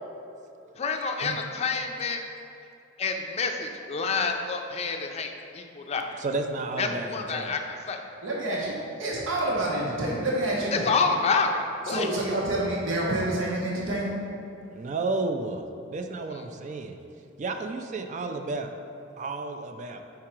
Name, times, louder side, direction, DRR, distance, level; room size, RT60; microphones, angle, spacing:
voice 1, 0.8-2.2 3.0-6.1 6.8-8.0 10.7-12.1, left 4 dB, 35° left, 4 dB, 0.4 m, -28 dB
voice 2, 6.2-7.5 12.3-12.5 14.7-17.0 17.4-18.7 19.2-20.0, right 3 dB, 40° right, 5 dB, 0.3 m, -32 dB
voice 3, 8.2-10.9 11.9-14.1, right 1 dB, 90° right, -4 dB, 1.0 m, -28 dB
4.8 x 4.7 x 4.4 m, 2.7 s
head